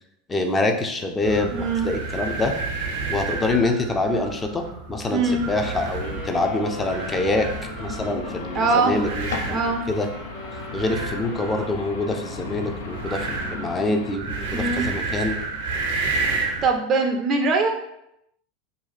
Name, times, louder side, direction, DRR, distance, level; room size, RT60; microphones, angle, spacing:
voice 1, 0.3-2.5 3.1-7.5 7.8-10.1 10.7-15.4, left 2 dB, 20° left, 5 dB, 0.5 m, -25 dB
sound 1, 1.2-16.7, right 3 dB, 75° right, 0.6 m, -31 dB
voice 2, 1.5-1.9 5.1-5.4 8.5-8.9 9.5-9.8 14.5-14.8 16.6-17.7, right 4 dB, 35° right, 3 dB, 0.5 m, -22 dB
Wind instrument woodwind instrument, 5.5-13.0, left 1 dB, 40° left, 0.9 m, -41 dB
sound 2, 6.0-14.2, left 6 dB, 80° left, 0.3 m, -37 dB
2.7 x 2.3 x 4.0 m, 0.81 s
hypercardioid pair, 90°, 0 cm